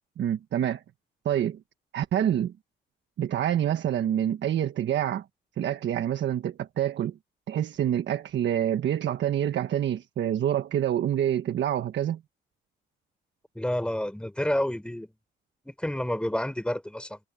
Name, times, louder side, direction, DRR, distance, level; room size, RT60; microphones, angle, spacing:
voice 1, 0.2-0.8 1.2-1.6 1.9-2.5 3.2-5.2 5.6-7.2 7.5-12.2, right 10 dB, 65° right, 1.3 m, -27 dB
voice 2, 13.5-15.1 15.6-17.2, left 1 dB, 5° left, 4.5 m, -29 dB
cardioid pair, 90°, 20 cm